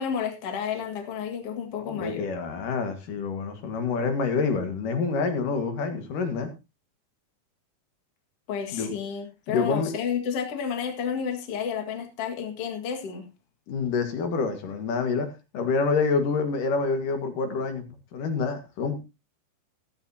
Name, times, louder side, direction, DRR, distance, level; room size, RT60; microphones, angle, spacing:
voice 1, 0.0-2.3 8.5-13.3, left 7 dB, 45° left, 2.5 m, -31 dB
voice 2, 1.8-6.5 8.7-8.9 9.5-9.9 13.7-15.3 15.5-19.0, left 4 dB, 65° left, 3.1 m, -27 dB
15.0 x 13.0 x 2.8 m
omnidirectional pair, 4.3 m